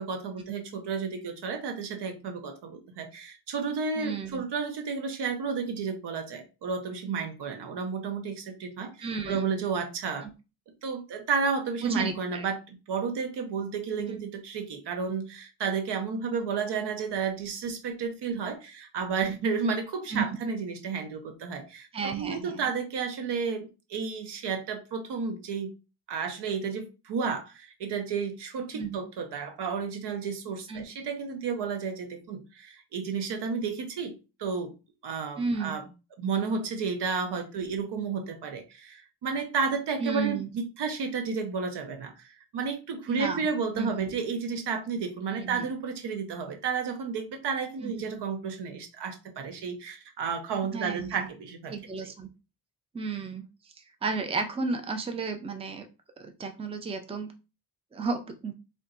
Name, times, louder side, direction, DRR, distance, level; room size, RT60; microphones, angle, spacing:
voice 1, 0.0-10.3 10.8-25.7 26.1-34.1 34.4-34.7 35.0-35.9 36.2-51.8 52.0-52.1, right 5 dB, 75° right, 6 dB, 0.8 m, -32 dB
voice 2, 4.0-4.4 9.0-9.5 11.8-12.4 14.0-14.2 20.1-20.2 21.9-22.6 28.7-29.0 30.7-30.8 35.4-35.8 40.0-40.5 43.1-43.5 43.7-44.1 45.3-45.7 47.8-48.0 50.6-51.3 51.7-52.3 52.9-53.5 54.0-55.9 56.2-57.3 57.9-58.5, right 4 dB, 15° right, 6 dB, 0.5 m, -33 dB
3.7 x 2.3 x 2.5 m, 0.29 s
cardioid pair, 90°, 41 cm